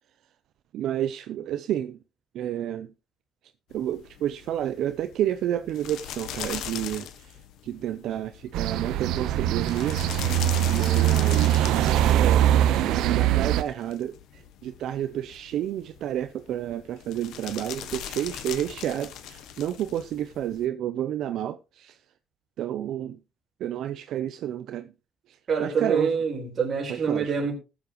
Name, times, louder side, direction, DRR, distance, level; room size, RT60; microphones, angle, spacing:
voice 1, 0.7-2.0 2.3-2.9 3.7-7.4 7.6-10.0 10.7-22.0 22.6-23.2 23.6-24.9 25.3-26.1 26.9-27.3, right 11 dB, 65° right, 0.6 m, -30 dB
sound 1, 3.7-20.7, left 10 dB, 75° left, 1.4 m, -40 dB
sound 2, 8.5-13.6, right 12 dB, 90° right, 0.8 m, -22 dB
voice 2, 25.5-27.5, right 5 dB, 35° right, 4.6 m, -26 dB
20.0 x 7.1 x 3.0 m
cardioid pair, 155°, 0 cm